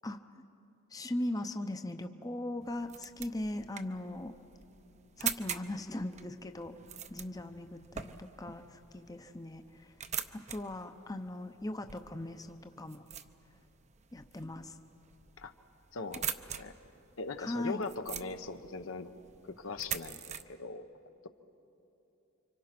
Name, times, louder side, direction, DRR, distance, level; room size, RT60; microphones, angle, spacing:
voice 1, 0.0-0.4 0.9-4.3 5.2-6.7 7.1-10.0 10.3-13.0 14.1-14.8 17.4-17.8, left 1 dB, 20° left, 7 dB, 0.7 m, -39 dB
sound 1, 2.6-20.4, right 8 dB, 35° right, 0.7 m, -44 dB
voice 2, 15.9-16.3 16.6-16.7 17.2-19.1 19.4-20.9, left 3 dB, 80° left, 8 dB, 1.0 m, -40 dB
29.5 x 25.0 x 6.0 m, 2.9 s
head